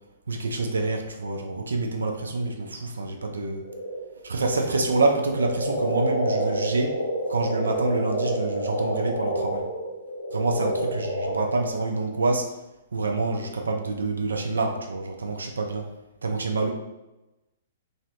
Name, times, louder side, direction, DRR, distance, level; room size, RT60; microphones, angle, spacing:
voice 1, 0.3-3.6 4.2-7.0 7.3-9.7 10.3-12.6 12.9-15.9 16.2-16.7, right 3 dB, 70° right, 3 dB, 0.3 m, -27 dB
sound 1, 3.6-11.7, right 1 dB, 90° left, 0.4 m, -28 dB
2.6 x 2.1 x 2.4 m, 1.0 s
figure-of-eight pair, 115°, 0 cm